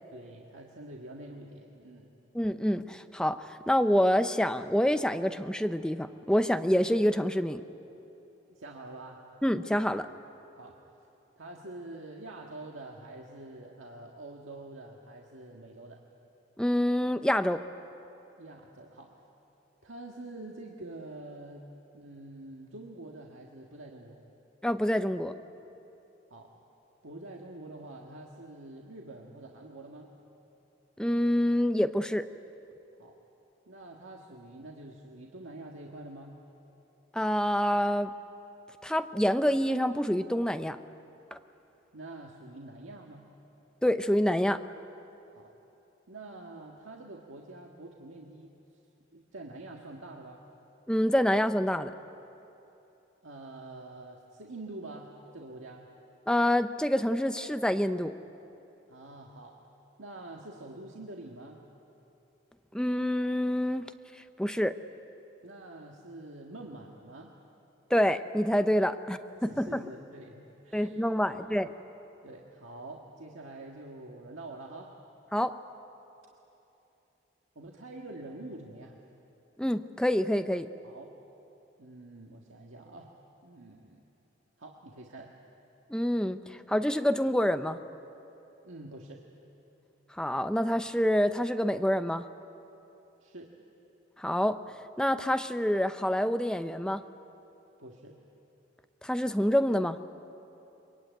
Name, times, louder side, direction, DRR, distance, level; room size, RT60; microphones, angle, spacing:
voice 1, 0.1-2.1 8.5-9.2 10.6-10.8 11.4-16.0 18.4-19.1 19.8-21.7 21.9-24.2 26.3-26.6 27.0-30.1 33.0-33.2 33.7-36.4 41.9-43.3 45.3-45.5 46.1-48.5 49.1-50.4 53.2-55.9 58.9-59.6 60.0-61.6 65.4-67.3 69.4-71.4 72.2-74.9 77.6-79.0 80.8-81.1 81.8-83.1 83.4-84.0 84.6-85.3 88.6-89.2 93.2-93.5 97.8-98.2, right 2 dB, 85° right, 0 dB, 1.8 m, -46 dB
voice 2, 2.3-7.6 9.4-10.1 16.6-17.6 24.6-25.3 31.0-32.2 37.1-38.1 38.8-40.8 41.3-41.4 43.8-44.6 50.9-51.9 56.3-58.1 62.7-63.9 64.4-64.7 67.9-69.8 70.7-71.7 75.3-75.5 79.6-80.7 85.9-87.8 90.1-92.2 94.2-94.6 95.0-97.0 99.0-100.0, equal, 5° left, 9 dB, 0.6 m, -27 dB
23.5 x 23.0 x 9.3 m, 2.9 s
head